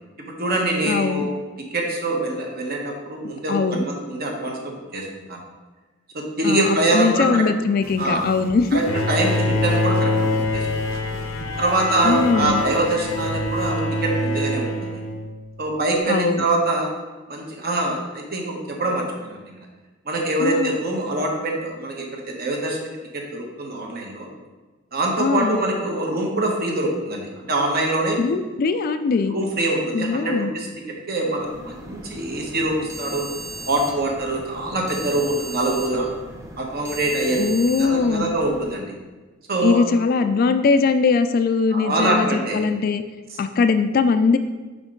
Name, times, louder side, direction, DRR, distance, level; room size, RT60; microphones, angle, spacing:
voice 1, 0.3-1.3 1.6-5.4 6.1-7.5 8.0-8.3 8.7-11.1 11.6-15.0 15.6-16.9 17.3-19.5 20.0-24.3 24.9-28.2 29.3-30.7 31.1-33.2 33.6-36.1 36.6-37.5 37.8-38.9 39.5-39.8 41.7-42.6, right 2 dB, 50° right, 0 dB, 1.1 m, -24 dB
voice 2, 0.8-1.3 3.2-3.8 6.4-8.8 12.0-12.6 16.1-16.4 20.4-20.8 25.2-25.6 28.2-29.3 29.9-30.5 37.3-38.3 39.6-43.0 43.4-44.4, left 4 dB, 45° left, 10 dB, 0.3 m, -21 dB
sound 1, 7.8-13.7, right 2 dB, 75° right, 0.6 m, -40 dB
Bowed string instrument, 8.9-15.6, left 1 dB, 85° left, 0.7 m, -24 dB
sound 2, 31.4-38.7, right 2 dB, 15° right, 0.7 m, -37 dB
5.2 x 5.1 x 3.8 m, 1.3 s
head